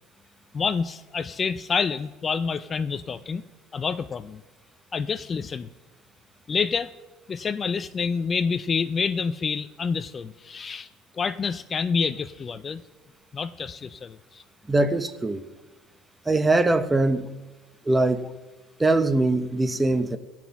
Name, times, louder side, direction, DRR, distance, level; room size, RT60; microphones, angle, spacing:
voice 1, 0.5-3.4 3.7-4.4 4.9-5.7 6.5-6.9 7.3-10.9 11.1-12.8 13.3-14.4, left 5 dB, 35° left, 14 dB, 0.5 m, -28 dB
voice 2, 14.7-15.5 16.3-17.3 17.9-18.3 18.8-20.2, right 2 dB, 15° right, 11 dB, 0.9 m, -22 dB
16.5 x 6.0 x 5.8 m, 1.2 s
supercardioid pair, 80°, 0 cm